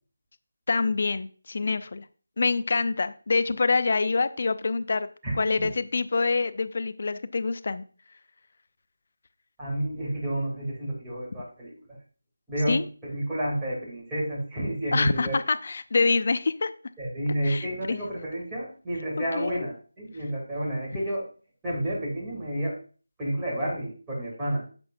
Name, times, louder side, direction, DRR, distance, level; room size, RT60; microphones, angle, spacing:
voice 1, 0.7-2.0 2.4-5.1 5.4-7.8 12.7-12.8 14.9-16.7 17.4-18.0 19.3-19.7, left 4 dB, 45° left, 12 dB, 0.6 m, -26 dB
voice 2, 5.2-5.7 9.6-11.7 12.5-15.3 17.0-21.2 21.6-22.7 23.2-24.6, right 1 dB, 10° right, -7 dB, 2.8 m, -30 dB
10.5 x 7.0 x 2.6 m, 0.39 s
figure-of-eight pair, 165°, 0 cm